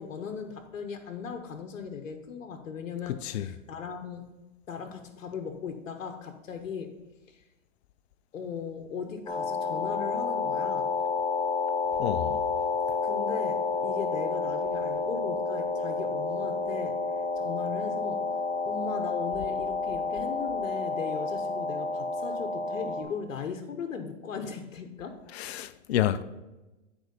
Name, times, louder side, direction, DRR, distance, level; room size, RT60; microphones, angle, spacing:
voice 1, 0.0-4.3 4.7-7.0 7.3-7.4 8.3-10.9 13.0-17.0 17.4-25.2, left 6 dB, 85° left, 1.0 m, -38 dB
voice 2, 3.1-3.5 12.0-12.4 25.3-26.2, left 12 dB, 55° left, 0.6 m, -29 dB
sound 1, 9.3-23.0, left 4 dB, 10° left, 1.2 m, -30 dB
9.0 x 4.6 x 5.4 m
hypercardioid pair, 130°, 39 cm